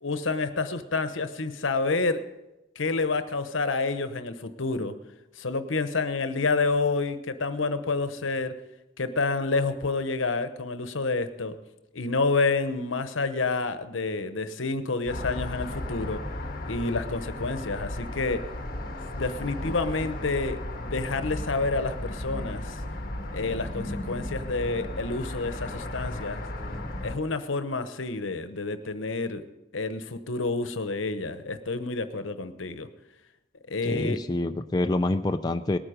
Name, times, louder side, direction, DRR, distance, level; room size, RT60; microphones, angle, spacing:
voice 1, 0.0-2.2 2.8-4.9 5.4-8.6 9.0-11.6 11.9-16.2 16.6-18.4 19.1-22.8 23.3-26.4 27.0-29.4 29.7-32.9 33.7-34.2, left 3 dB, 75° left, 10 dB, 1.0 m, -29 dB
sound 1, 15.1-27.2, left 1 dB, 45° left, 1.4 m, -35 dB
voice 2, 33.9-35.8, left 2 dB, 20° left, 7 dB, 0.4 m, -26 dB
19.5 x 9.0 x 5.1 m, 1.0 s
head